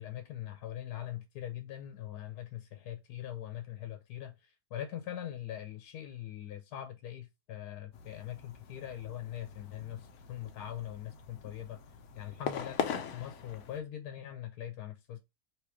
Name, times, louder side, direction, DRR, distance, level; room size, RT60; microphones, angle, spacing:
voice 1, 0.0-11.8 12.1-12.8 13.1-15.2, left 11 dB, 80° left, 1.1 m, -42 dB
sound 1, 7.9-13.8, left 7 dB, 65° left, 0.8 m, -41 dB
3.2 x 3.0 x 4.7 m
omnidirectional pair, 1.7 m